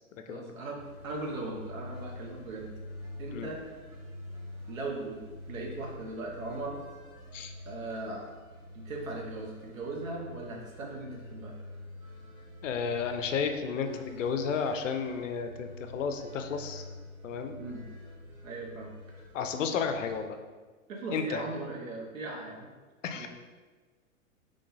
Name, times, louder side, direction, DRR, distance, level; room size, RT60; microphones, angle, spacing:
voice 1, 0.3-2.7 3.2-3.6 4.7-6.8 7.6-8.3 8.7-11.5 17.6-17.8 18.4-18.9 20.9-22.7 23.1-23.3, right 2 dB, 70° right, 0 dB, 1.0 m, -39 dB
sound 1, 0.8-20.2, left 1 dB, 85° right, 1.3 m, -46 dB
voice 2, 12.6-16.8 17.2-17.5 19.3-20.4 21.1-21.4 23.0-23.3, left 6 dB, 60° left, 7 dB, 0.5 m, -32 dB
3.6 x 3.3 x 2.7 m, 1.4 s
figure-of-eight pair, 105°, 42 cm